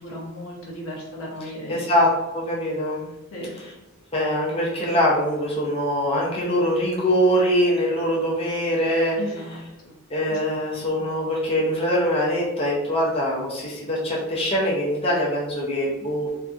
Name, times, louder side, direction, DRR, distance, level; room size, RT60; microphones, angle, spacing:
voice 1, 0.0-1.9 3.3-3.6 9.2-10.0 10.3-11.0, left 1 dB, 80° left, -2 dB, 0.7 m, -36 dB
voice 2, 1.7-3.1 4.1-9.2 10.1-16.3, equal, 25° left, -5 dB, 0.5 m, -23 dB
2.6 x 2.4 x 2.3 m, 0.95 s
head